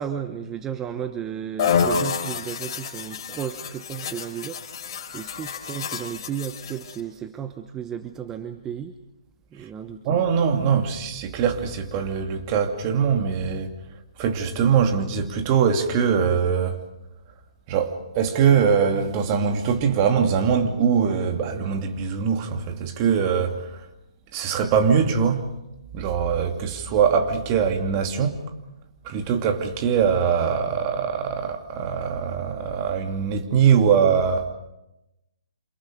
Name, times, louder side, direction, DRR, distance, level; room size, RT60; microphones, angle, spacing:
voice 1, 0.0-9.0 9.5-10.1, right 8 dB, 15° right, 1.0 m, -34 dB
sound 1, 1.6-7.0, left 6 dB, 45° left, 4.3 m, -28 dB
voice 2, 10.0-13.8 14.2-16.8 17.7-23.9 24.3-25.5 25.9-28.4 29.0-34.5, right 7 dB, 30° right, 2.7 m, -22 dB
29.0 x 27.5 x 5.2 m
figure-of-eight pair, 130°, 3 cm